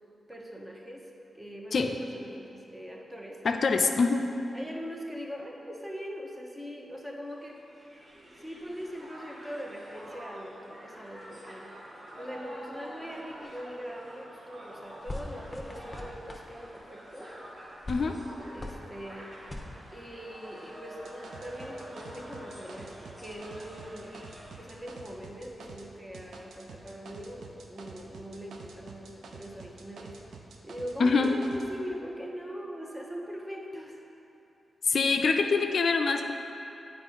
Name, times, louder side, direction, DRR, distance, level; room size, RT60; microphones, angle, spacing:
voice 1, 0.3-3.4 4.5-7.6 8.4-11.7 12.1-17.4 18.5-19.3 19.9-24.1 24.5-30.2 30.6-34.0, equal, 15° right, 0 dB, 1.0 m, -41 dB
voice 2, 3.4-4.3 17.9-18.3 31.0-31.3 34.8-36.3, left 4 dB, 70° left, 5 dB, 0.4 m, -25 dB
Crowd, 7.3-24.7, equal, 55° right, 1.6 m, -47 dB
sound 1, 14.8-25.7, left 1 dB, 20° left, 0.9 m, -46 dB
sound 2, 21.0-25.9 26.1-31.7, right 4 dB, 85° right, 0.5 m, -48 dB
7.9 x 4.7 x 3.9 m, 2.8 s
cardioid pair, 55°, 0 cm